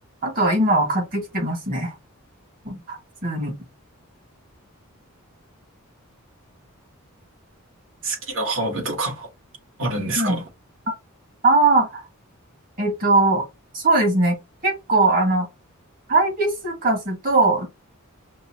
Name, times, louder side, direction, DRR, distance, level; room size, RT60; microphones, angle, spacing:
voice 1, 0.2-1.9 2.6-3.6 10.2-10.4 11.4-12.0 12.8-13.4 13.7-14.4 14.6-15.5 16.1-17.7, right 2 dB, 40° right, 1.7 m, -20 dB
voice 2, 8.0-9.3 9.8-10.4, right 2 dB, 60° right, 1.4 m, -26 dB
5.3 x 2.0 x 2.8 m
head